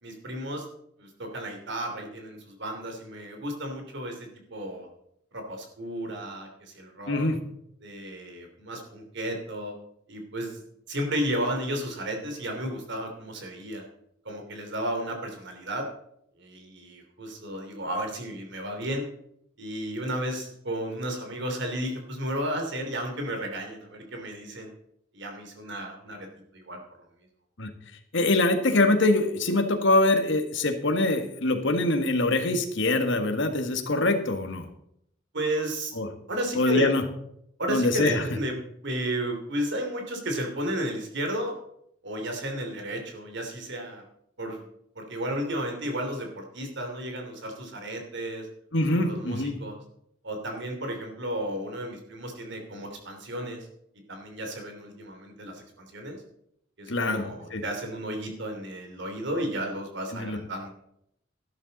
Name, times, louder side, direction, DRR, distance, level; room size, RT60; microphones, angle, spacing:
voice 1, 0.0-0.6 1.0-4.9 5.3-7.4 7.8-9.7 10.1-13.9 14.2-15.8 16.4-19.1 19.6-24.7 25.1-26.3 26.5-26.8 35.3-35.9 36.3-36.9 37.6-38.5 38.8-41.6 42.0-44.0 44.4-44.7 44.9-48.5 48.9-49.8 50.2-53.7 54.1-56.2 56.8-60.7, right 1 dB, 65° right, 4 dB, 3.2 m, -33 dB
voice 2, 7.1-7.4 27.6-27.7 28.1-34.7 36.0-36.1 36.6-37.0 37.7-38.2 48.7-49.6 56.9-57.6 60.1-60.4, left 2 dB, 65° left, 6 dB, 1.7 m, -24 dB
12.5 x 12.0 x 4.2 m, 0.75 s
head